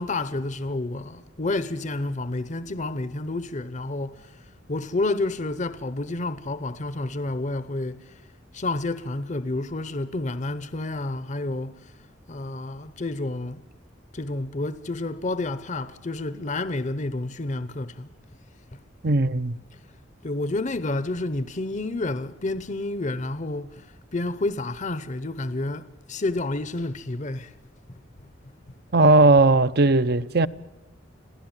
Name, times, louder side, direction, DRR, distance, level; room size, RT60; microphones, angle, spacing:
voice 1, 0.0-8.2 8.5-11.9 12.3-13.6 14.1-18.1 18.7-18.8 20.2-27.5 27.9-28.0, left 2 dB, 40° left, 0.9 m, -30 dB
voice 2, 19.0-19.5 28.9-30.5, right 2 dB, 55° right, 0.8 m, -17 dB
26.5 x 17.0 x 9.0 m
head